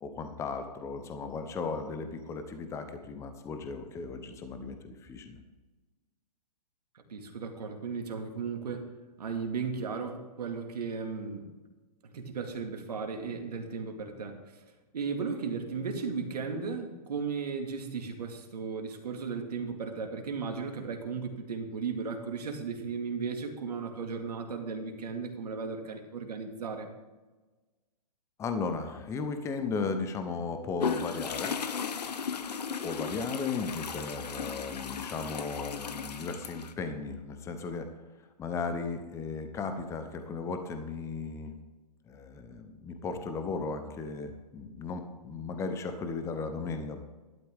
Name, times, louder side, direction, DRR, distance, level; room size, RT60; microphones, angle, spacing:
voice 1, 0.0-5.4 28.4-31.6 32.8-37.9 38.4-41.6 42.1-47.0, left 4 dB, 15° left, 8 dB, 0.9 m, -36 dB
voice 2, 7.1-8.9 9.2-11.5 12.0-14.6 14.9-26.9, right 5 dB, 70° right, 3 dB, 2.2 m, -35 dB
sound 1, 30.8-36.7, left 6 dB, 75° left, 1.0 m, -36 dB
12.5 x 12.0 x 3.6 m, 1.2 s
hypercardioid pair, 130°, 21 cm